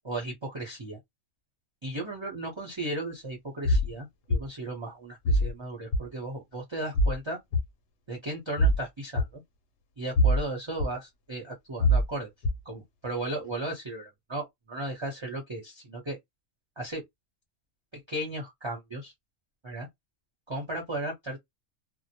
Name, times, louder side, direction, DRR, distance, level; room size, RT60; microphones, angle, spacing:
voice 1, 0.0-1.0 1.8-7.4 8.1-9.4 10.0-12.3 12.6-16.2 16.8-17.0 17.9-19.1 19.6-19.9 20.5-21.4, right 1 dB, 30° right, 0.7 m, -35 dB
sound 1, 3.7-3.9 4.3-4.4 5.3-5.5 5.9-6.0 6.9-7.2 7.5-7.6 8.6-8.8 9.2-9.3 10.2-10.4 10.8-10.9 11.8-12.1 12.4-12.6, equal, 65° left, 0.8 m, -22 dB
2.1 x 2.1 x 2.7 m
omnidirectional pair, 1.3 m